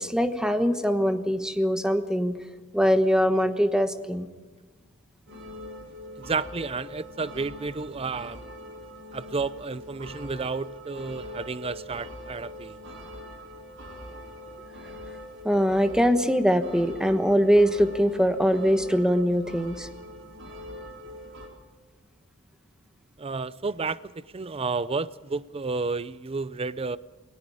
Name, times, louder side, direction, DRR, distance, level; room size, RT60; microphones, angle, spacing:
voice 1, 0.0-2.3 2.7-4.3 15.4-19.9, equal, 5° right, 1.2 m, -22 dB
sound 1, 5.3-21.5, left 1 dB, 65° right, 3.8 m, -42 dB
voice 2, 6.2-8.4 9.1-12.8 23.2-27.0, right 4 dB, 30° right, 0.5 m, -31 dB
28.0 x 19.0 x 4.9 m
head